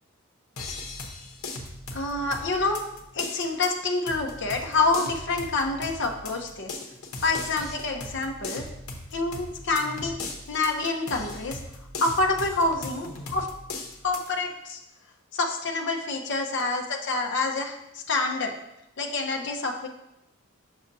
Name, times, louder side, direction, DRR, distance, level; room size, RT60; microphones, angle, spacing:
sound 1, 0.6-14.3, left 2 dB, 85° left, 0.9 m, -39 dB
voice 1, 1.9-2.8 3.1-6.8 7.2-8.6 9.1-11.6 12.0-13.5 14.0-14.8 15.3-18.5 19.0-19.9, left 3 dB, 55° left, 3 dB, 0.8 m, -27 dB
6.6 x 6.3 x 2.7 m, 0.87 s
head